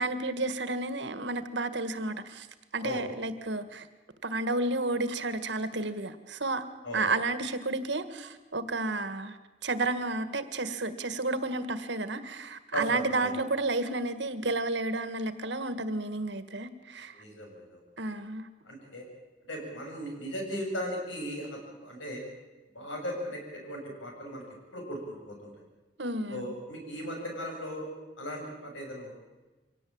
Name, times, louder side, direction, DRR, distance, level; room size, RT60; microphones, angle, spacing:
voice 1, 0.0-2.5 2.7-3.9 4.2-6.6 6.9-9.4 9.6-17.1 18.0-18.5 26.0-26.5, right 2 dB, 70° right, 11 dB, 1.8 m, -31 dB
voice 2, 12.7-13.3 17.1-17.8 18.7-19.0 19.5-22.2 22.7-24.4 24.7-25.5 26.3-27.9 28.2-29.1, equal, 85° left, 1 dB, 7.5 m, -37 dB
24.5 x 17.5 x 8.8 m, 1.2 s
head